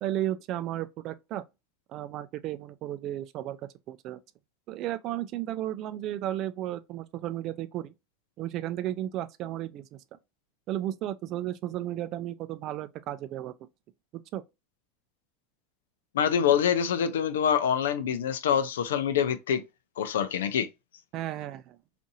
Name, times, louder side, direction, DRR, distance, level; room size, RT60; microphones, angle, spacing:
voice 1, 0.0-1.4 1.9-3.6 3.9-4.2 4.7-7.9 8.4-10.0 10.7-13.6 14.1-14.4 21.1-21.8, right 13 dB, 50° right, 0.3 m, -34 dB
voice 2, 16.1-19.6 20.0-20.7, left 8 dB, 90° left, 0.4 m, -25 dB
2.7 x 2.5 x 2.6 m
supercardioid pair, 105°, 0 cm